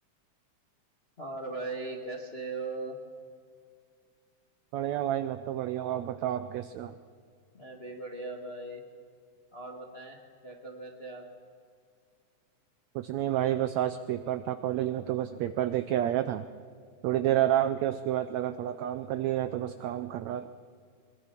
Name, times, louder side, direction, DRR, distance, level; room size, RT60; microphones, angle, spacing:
voice 1, 1.2-3.0 7.5-8.8 9.5-10.2 10.4-11.2, right 2 dB, 35° left, 2 dB, 1.0 m, -38 dB
voice 2, 4.7-7.0 12.9-16.5 17.0-20.5, right 12 dB, 80° right, 11 dB, 1.6 m, -29 dB
22.5 x 22.5 x 5.9 m, 2.2 s
omnidirectional pair, 3.8 m